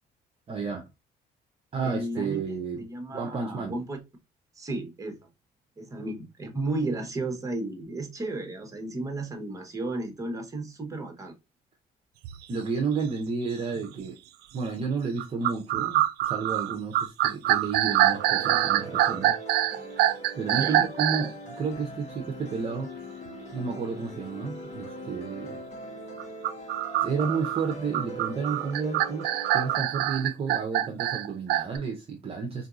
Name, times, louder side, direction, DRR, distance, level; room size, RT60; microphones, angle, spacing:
voice 1, 0.5-0.9 1.7-2.8 3.1-3.8 12.5-14.2 14.5-19.3 20.3-22.9 23.5-25.6 27.0-32.7, right 5 dB, 35° right, 0.6 m, -31 dB
voice 2, 1.8-2.4 2.8-4.0 4.6-5.2 5.8-11.3 20.5-20.9, right 2 dB, 20° right, 1.0 m, -33 dB
sound 1, 12.2-12.4 13.0-13.1 13.8-14.1 15.2-21.3 26.2-31.8, right 13 dB, 75° right, 0.4 m, -25 dB
sound 2, 18.1-29.8, right 1 dB, 45° left, 1.2 m, -41 dB
3.8 x 2.6 x 2.4 m
cardioid pair, 110°, 17 cm